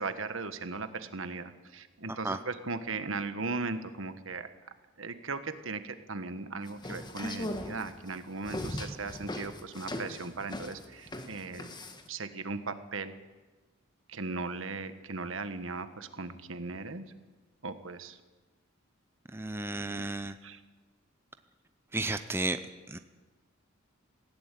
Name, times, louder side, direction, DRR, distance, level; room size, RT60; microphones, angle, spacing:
voice 1, 0.0-4.5 5.0-11.7 12.1-13.1 14.1-17.1 17.6-18.2 20.4-20.6, right 3 dB, 65° right, 10 dB, 1.5 m, -38 dB
sound 1, 6.7-12.1, left 1 dB, 20° left, 1.6 m, -39 dB
voice 2, 19.3-20.4 21.9-22.6 22.9-23.0, right 2 dB, 10° right, 9 dB, 0.6 m, -33 dB
18.5 x 16.0 x 9.2 m, 1.3 s
head